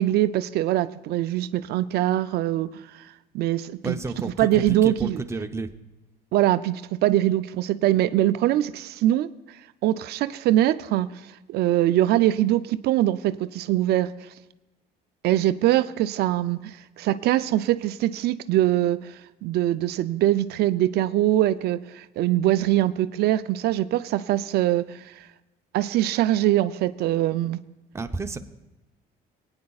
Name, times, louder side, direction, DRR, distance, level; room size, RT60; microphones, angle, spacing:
voice 1, 0.0-2.7 2.9-3.0 3.3-4.0 4.4-5.2 6.3-9.3 9.8-11.1 11.5-14.1 15.2-25.2 25.7-27.6, right 13 dB, 70° right, 13 dB, 0.4 m, -23 dB
voice 2, 3.8-5.7 27.9-28.4, right 3 dB, 15° right, 6 dB, 0.7 m, -31 dB
20.5 x 9.6 x 2.3 m, 1.0 s
cardioid pair, 110°, 17 cm